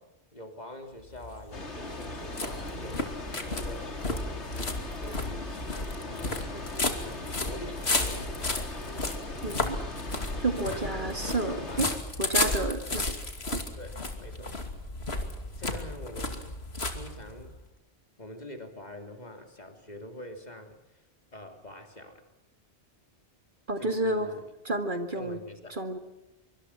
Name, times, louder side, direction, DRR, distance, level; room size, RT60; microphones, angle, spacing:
voice 1, 0.0-4.3 4.6-5.8 6.1-8.7 10.7-11.8 12.4-12.7 13.8-14.6 15.5-16.6 16.9-17.5 18.2-21.0 21.3-22.2 23.8-24.5 25.1-25.8, left 1 dB, 40° left, 5 dB, 3.2 m, -45 dB
sound 1, 1.0-17.6, left 2 dB, 70° left, 2.9 m, -33 dB
sound 2, 1.5-12.0, left 2 dB, 85° left, 3.2 m, -40 dB
voice 2, 9.4-9.8 10.4-11.9 12.2-13.1 13.5-13.6 23.7-24.3 24.6-25.4 25.7-26.0, right 2 dB, 50° right, 7 dB, 2.2 m, -30 dB
24.5 x 24.5 x 6.0 m, 0.95 s
omnidirectional pair, 1.1 m